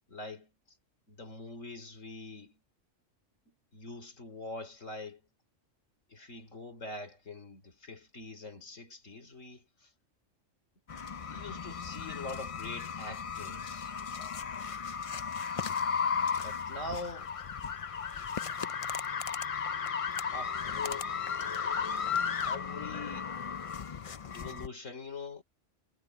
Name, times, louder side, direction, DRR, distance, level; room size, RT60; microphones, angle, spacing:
voice 1, 0.1-0.5 1.1-2.6 3.7-5.2 6.1-9.6 11.2-13.9 16.3-17.3 20.3-21.1 22.4-23.3 24.3-25.4, left 2 dB, 80° left, 3.7 m, -43 dB
sound 1, 10.9-24.7, left 6 dB, 45° left, 0.4 m, -35 dB
omnidirectional pair, 1.3 m